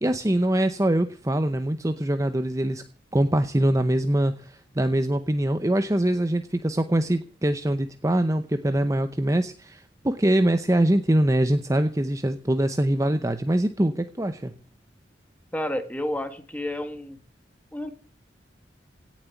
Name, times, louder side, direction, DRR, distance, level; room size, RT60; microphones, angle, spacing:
voice 1, 0.0-2.8 3.1-14.5, right 1 dB, 15° right, 9 dB, 0.7 m, -23 dB
voice 2, 15.5-17.2 17.7-17.9, left 1 dB, 10° left, 8 dB, 1.7 m, -30 dB
17.5 x 7.4 x 8.2 m, 0.41 s
head